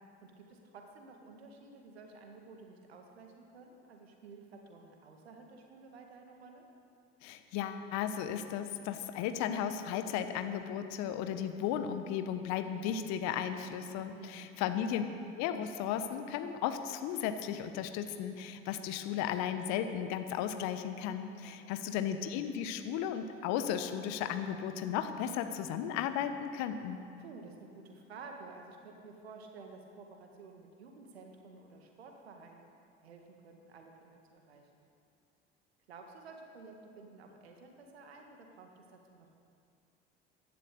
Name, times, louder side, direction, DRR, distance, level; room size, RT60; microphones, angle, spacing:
voice 1, 0.2-6.7 14.1-14.5 21.4-21.8 27.2-34.7 35.9-39.3, right 4 dB, 75° right, 3 dB, 1.8 m, -52 dB
voice 2, 7.2-15.0 15.4-27.0, left 9 dB, 60° left, 9 dB, 1.2 m, -35 dB
15.0 x 11.5 x 6.7 m, 2.5 s
figure-of-eight pair, 60°, 31 cm